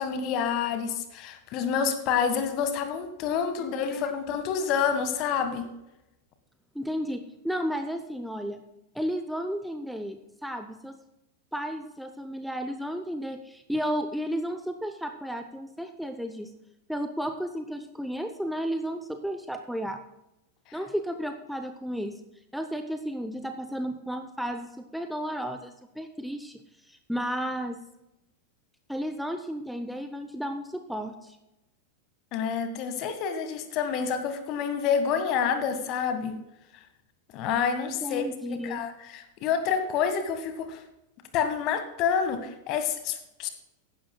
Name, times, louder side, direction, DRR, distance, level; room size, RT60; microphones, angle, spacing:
voice 1, 0.0-5.7 32.3-36.3 37.3-38.2 38.5-40.8 41.3-43.5, left 7 dB, 40° left, 9 dB, 1.6 m, -28 dB
voice 2, 3.6-4.1 6.7-8.6 8.9-11.0 11.5-16.5 16.9-20.0 20.7-22.2 22.5-26.6 26.9-27.8 28.9-31.4 38.0-38.8, equal, ahead, 7 dB, 0.8 m, -33 dB
15.5 x 11.5 x 2.3 m, 0.90 s
figure-of-eight pair, 90°, 0 cm